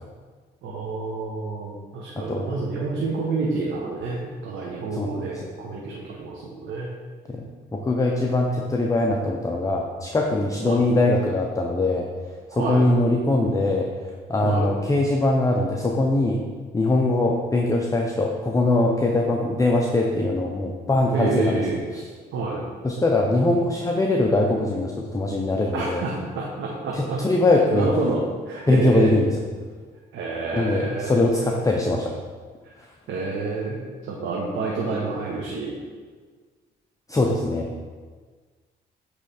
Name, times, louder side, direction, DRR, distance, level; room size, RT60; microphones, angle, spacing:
voice 1, 0.6-6.9 10.6-10.8 12.5-12.8 14.4-14.7 21.1-21.8 22.3-22.6 25.7-27.2 27.7-28.2 28.5-29.1 30.1-31.5 33.1-33.8 34.1-35.7, right 3 dB, 80° right, -3 dB, 0.9 m, -28 dB
voice 2, 2.2-2.6 4.9-5.5 7.3-12.1 12.5-13.9 14.3-16.4 16.7-22.1 22.8-26.0 26.9-27.9 28.7-29.4 30.5-32.2 37.1-37.7, left 2 dB, 15° left, 0 dB, 0.6 m, -22 dB
8.4 x 3.3 x 4.2 m, 1.5 s
cardioid pair, 90°, 20 cm